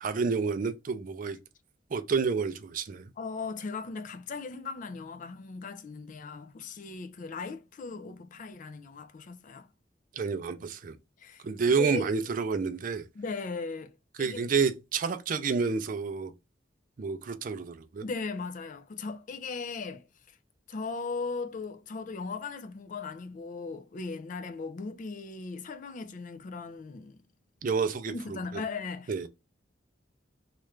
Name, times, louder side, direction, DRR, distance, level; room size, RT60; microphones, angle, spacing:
voice 1, 0.0-1.4 1.9-3.1 10.2-11.0 11.4-13.0 14.2-16.3 17.0-18.0 27.6-28.4 29.1-29.3, right 5 dB, 45° right, 0.4 m, -29 dB
voice 2, 3.2-9.7 11.2-12.1 13.2-13.9 14.2-14.5 18.0-20.0 20.7-27.2 28.1-29.3, left 4 dB, 45° left, 0.4 m, -38 dB
3.1 x 2.4 x 3.1 m
head